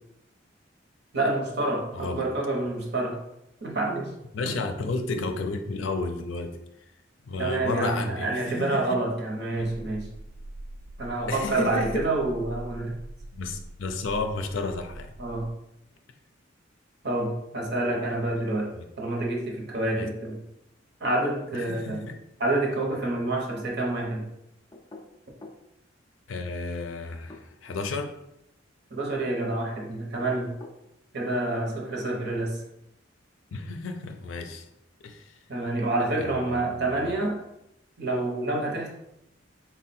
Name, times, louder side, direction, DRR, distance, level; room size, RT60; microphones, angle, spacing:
voice 1, 1.1-3.2 3.6-4.1 4.4-4.6 7.4-10.1 11.0-13.0 15.2-15.5 17.0-20.4 21.0-22.1 22.4-24.3 28.9-30.6 31.1-32.6 35.5-37.4 38.0-38.9, right 2 dB, 60° right, 0 dB, 0.9 m, -28 dB
voice 2, 1.9-2.3 4.3-6.6 7.3-9.0 11.3-12.1 13.3-15.1 18.7-18.9 20.0-20.1 21.5-22.1 26.3-28.1 33.5-34.7 35.0-35.4 36.2-37.2, left 3 dB, 85° left, 6 dB, 0.5 m, -32 dB
sound 1, 9.5-15.5, right 1 dB, 90° right, 0.4 m, -43 dB
sound 2, 24.7-25.7 27.1-27.9 30.0-30.8, left 2 dB, 20° left, 0.4 m, -47 dB
3.7 x 2.2 x 4.1 m, 0.83 s
head